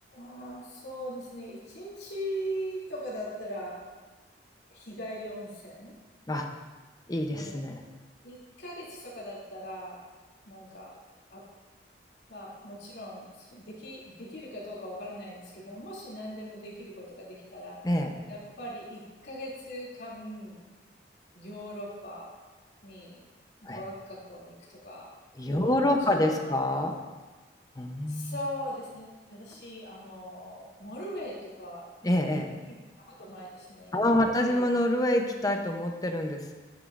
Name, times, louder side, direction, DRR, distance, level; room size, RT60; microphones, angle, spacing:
voice 1, 0.1-3.8 4.7-5.9 7.3-7.6 8.2-10.0 10.4-11.0 11.3-11.4 12.3-17.8 18.3-20.6 21.3-22.3 22.8-23.2 23.6-25.1 25.5-26.6 28.1-31.9 32.7-34.8, equal, 70° left, -6 dB, 2.7 m, -40 dB
voice 2, 7.1-7.8 17.8-18.1 23.6-23.8 25.4-26.9 27.8-28.4 32.0-32.5 33.9-36.5, left 1 dB, 20° left, 4 dB, 0.7 m, -26 dB
10.0 x 9.3 x 2.5 m, 1.3 s
head